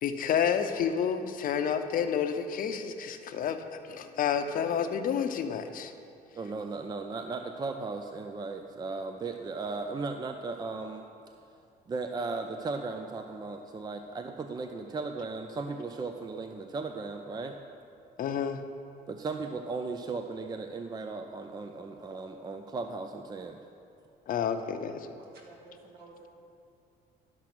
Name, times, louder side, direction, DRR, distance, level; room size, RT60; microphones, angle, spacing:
voice 1, 0.0-5.9 18.2-18.6 24.3-25.1, left 7 dB, 55° left, 8 dB, 0.7 m, -30 dB
voice 2, 6.3-11.1 11.9-17.6 19.1-23.6, right 3 dB, 25° right, 6 dB, 0.5 m, -36 dB
voice 3, 25.2-26.3, right 2 dB, 70° right, -1 dB, 2.2 m, -52 dB
12.0 x 6.1 x 6.1 m, 2.5 s
cardioid pair, 110°, 17 cm